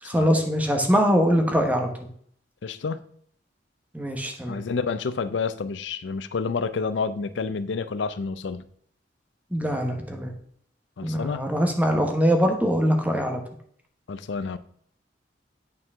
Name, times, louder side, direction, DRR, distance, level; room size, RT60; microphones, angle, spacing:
voice 1, 0.0-2.1 3.9-4.6 9.5-10.3 11.0-13.4, equal, 10° right, 4 dB, 1.0 m, -23 dB
voice 2, 2.6-3.0 4.5-8.7 11.0-11.4 14.1-14.6, left 5 dB, 80° left, 14 dB, 0.5 m, -29 dB
8.8 x 4.5 x 3.6 m, 0.63 s
head